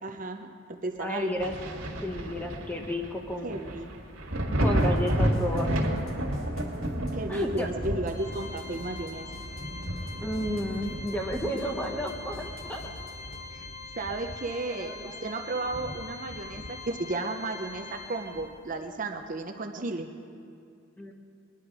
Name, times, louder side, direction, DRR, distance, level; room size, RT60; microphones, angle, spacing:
voice 1, 0.0-1.3 3.4-3.9 7.1-9.3 13.5-13.7 14.0-20.1, right 2 dB, 40° right, 5 dB, 0.6 m, -34 dB
voice 2, 1.0-1.5 2.0-3.6 4.6-5.7 7.3-7.7 10.2-12.8 14.8-15.2 21.0-21.1, equal, 10° left, 1 dB, 1.1 m, -32 dB
Thunder, 1.4-12.7 13.2-14.7 15.0-15.1 15.7-17.0 18.4-18.5, equal, 90° right, 1.8 m, -32 dB
sound 1, 4.8-13.4, equal, 90° left, 2.9 m, -45 dB
Organ, 8.1-18.8, left 4 dB, 40° left, 4.1 m, -44 dB
20.5 x 10.5 x 4.8 m, 2.4 s
head